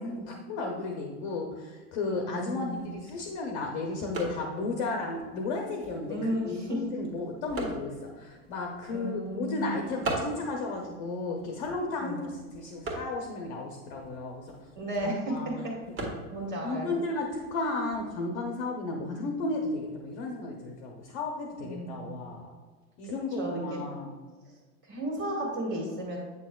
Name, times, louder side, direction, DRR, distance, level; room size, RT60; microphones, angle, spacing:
voice 1, 0.0-6.2 6.4-14.5 15.0-15.5 16.6-22.5 23.0-24.1, left 3 dB, 25° left, 1 dB, 0.4 m, -34 dB
voice 2, 2.3-2.9 6.1-6.8 8.9-9.7 12.0-12.2 14.8-15.5 16.3-16.9 21.6-22.3 23.0-23.8 24.8-26.2, right 1 dB, 25° right, -1 dB, 1.8 m, -34 dB
sound 1, 2.6-18.1, right 2 dB, 45° right, 1.6 m, -42 dB
8.4 x 6.2 x 2.2 m, 1.4 s
supercardioid pair, 150°, 44 cm